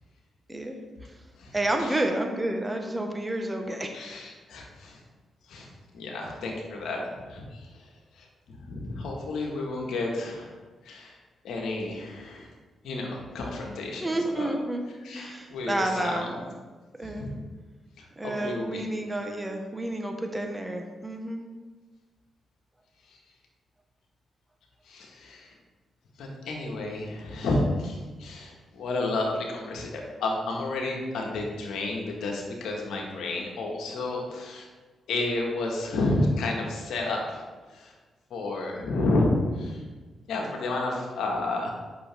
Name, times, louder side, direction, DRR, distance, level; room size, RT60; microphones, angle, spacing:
voice 1, 1.5-4.0 14.0-14.8 15.1-16.5 17.0-17.3 18.2-21.4, right 1 dB, 15° right, 3 dB, 1.3 m, -30 dB
voice 2, 3.9-5.0 5.5-8.3 8.7-10.5 10.8-11.2 11.4-12.5 12.8-14.5 15.0-16.2 17.0-17.3 18.0-18.8 23.1-23.2 24.8-25.5 26.2-34.7 35.1-37.9 38.3-39.8 40.3-41.7, left 2 dB, 75° left, 0 dB, 1.5 m, -31 dB
8.5 x 6.2 x 3.5 m, 1.3 s
supercardioid pair, 45°, 0 cm